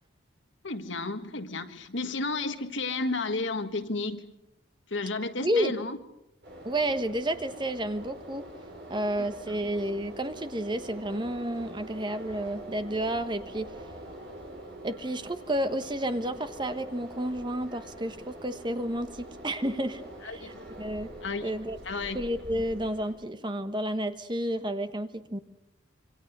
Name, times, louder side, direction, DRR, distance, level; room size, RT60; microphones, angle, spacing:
voice 1, 0.6-4.3 4.9-6.0 9.5-9.6 20.2-20.5 21.2-21.5 21.8-22.2, left 3 dB, 70° left, 8 dB, 1.7 m, -32 dB
voice 2, 5.4-5.7 6.6-8.5 8.9-13.7 14.8-21.1 21.4-21.8 22.1-25.4, right 1 dB, 25° right, 9 dB, 1.2 m, -31 dB
sound 1, 6.4-23.1, right 1 dB, 55° right, 6.7 m, -45 dB
26.5 x 24.5 x 6.7 m, 0.86 s
head